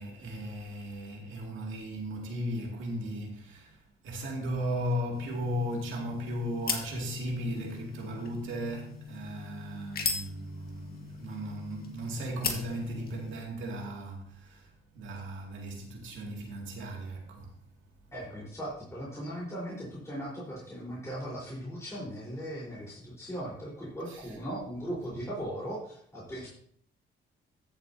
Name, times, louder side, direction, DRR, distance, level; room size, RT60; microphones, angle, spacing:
voice 1, 0.0-17.5 24.1-24.3, equal, 80° right, 2.3 m, -36 dB
sound 1, 5.1-13.4, left 5 dB, 50° left, 1.8 m, -39 dB
voice 2, 18.1-26.5, equal, 15° left, 4.1 m, -38 dB
14.0 x 7.4 x 2.8 m
cardioid pair, 90°, 20 cm